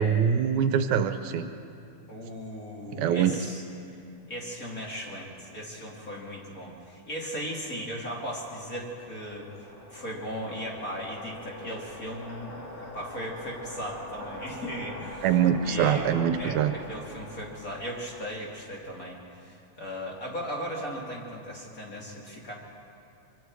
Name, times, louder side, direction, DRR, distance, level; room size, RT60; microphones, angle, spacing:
voice 1, 0.0-1.5 2.9-3.4 15.2-16.7, right 8 dB, 80° right, 8 dB, 2.2 m, -24 dB
voice 2, 2.1-3.6 4.3-15.3 15.6-22.5, equal, 30° left, -3 dB, 2.9 m, -37 dB
sound 1, 8.5-18.8, left 1 dB, 80° left, 8.7 m, -44 dB
25.5 x 24.0 x 4.8 m, 2.6 s
omnidirectional pair, 3.4 m